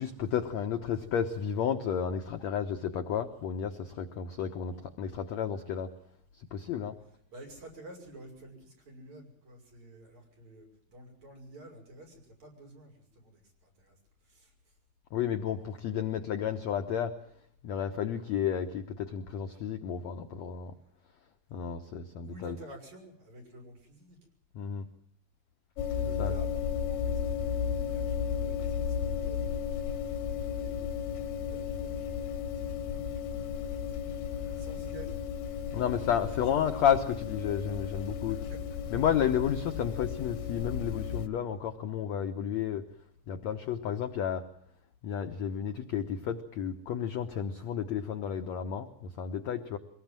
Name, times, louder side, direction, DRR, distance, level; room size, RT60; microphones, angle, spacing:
voice 1, 0.0-5.9 6.4-6.9 15.1-17.1 17.6-20.7 21.5-22.6 24.5-24.8 26.2-26.4 35.7-38.4 38.9-42.8 43.3-44.4 45.0-49.8, left 8 dB, 70° left, 7 dB, 1.7 m, -32 dB
voice 2, 7.3-14.8 22.2-24.2 25.9-29.7 30.1-30.8 31.2-34.0 34.4-35.3 35.7-35.8 36.5-36.7 37.8-38.7 39.0-39.1, right 1 dB, 45° right, 2 dB, 7.3 m, -51 dB
sound 1, 25.8-41.3, left 7 dB, 90° left, 3.2 m, -34 dB
23.5 x 19.5 x 7.5 m, 0.68 s
omnidirectional pair, 4.4 m